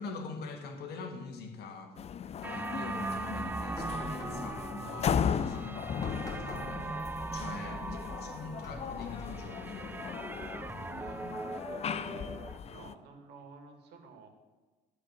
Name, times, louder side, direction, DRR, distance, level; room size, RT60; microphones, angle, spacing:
voice 1, 0.0-2.0 2.4-7.8 8.2-10.0, left 4 dB, 75° left, 5 dB, 1.7 m, -44 dB
sound 1, 2.0-12.9, left 7 dB, 40° left, 0.5 m, -37 dB
sound 2, 2.4-12.6, right 3 dB, 10° right, 0.3 m, -40 dB
sound 3, 3.7-11.2, left 2 dB, 20° left, 3.1 m, -48 dB
voice 2, 7.4-8.5 10.9-11.3 11.7-12.3 12.7-14.3, right 4 dB, 75° right, 4 dB, 2.2 m, -52 dB
13.5 x 5.0 x 7.3 m, 1.3 s
cardioid pair, 110°, 17 cm